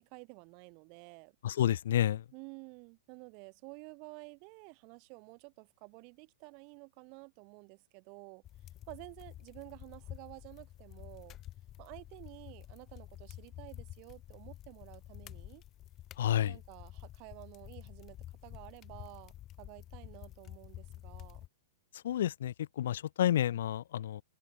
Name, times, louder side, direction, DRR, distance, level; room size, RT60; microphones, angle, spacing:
voice 1, 0.0-1.4 2.3-8.4 8.9-11.4 11.8-15.6 16.4-21.5, right 36 dB, 45° right, 3.2 m, -51 dB
voice 2, 1.4-2.2 16.2-16.6 21.9-24.2, left 11 dB, 65° left, 0.8 m, -30 dB
sound 1, 8.4-21.5, left 13 dB, 30° left, 1.4 m, -50 dB
hypercardioid pair, 110°, 0 cm